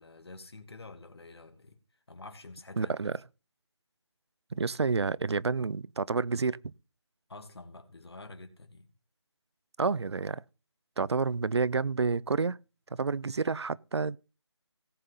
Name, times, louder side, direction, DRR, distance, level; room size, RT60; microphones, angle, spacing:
voice 1, 0.0-1.8 2.1-2.9 7.3-8.9, left 2 dB, 60° left, 2.1 m, -48 dB
voice 2, 2.8-3.2 4.5-6.6 9.8-10.4 11.0-12.6 12.9-14.2, right 4 dB, 65° right, 0.5 m, -29 dB
18.0 x 6.5 x 3.9 m
figure-of-eight pair, 175°, 15 cm